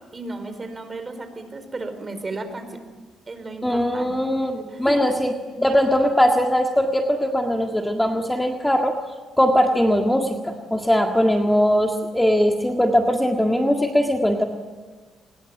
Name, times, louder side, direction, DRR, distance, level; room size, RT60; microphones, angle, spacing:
voice 1, 0.1-2.8 3.3-4.1 4.7-5.2, right 3 dB, 30° right, 9 dB, 4.6 m, -34 dB
voice 2, 3.6-5.3 5.6-8.9 9.4-14.4, equal, 5° left, 3 dB, 1.8 m, -20 dB
24.5 x 21.5 x 9.0 m, 1.5 s
cardioid pair, 90°, 0 cm